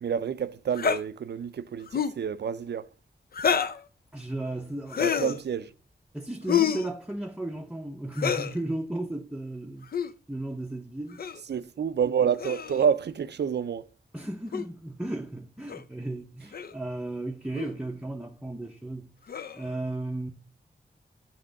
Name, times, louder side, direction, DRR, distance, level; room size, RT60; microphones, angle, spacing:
voice 1, 0.0-2.9 5.0-5.7 11.5-13.9, right 7 dB, 70° right, 0.5 m, -28 dB
slightscream-source, 0.8-1.0 1.9-2.2 3.3-3.8 4.9-5.4 6.5-6.9 8.1-8.5 9.8-10.1 11.2-11.4 12.4-12.9 14.5-14.7 15.7-15.8 16.5-16.7 17.5-17.7 19.3-19.7, left 7 dB, 55° left, 0.5 m, -27 dB
voice 2, 4.1-5.4 6.1-11.2 14.1-19.1 19.5-20.3, right 1 dB, 5° right, 0.6 m, -35 dB
7.5 x 3.6 x 6.4 m
wide cardioid pair, 80°, 18 cm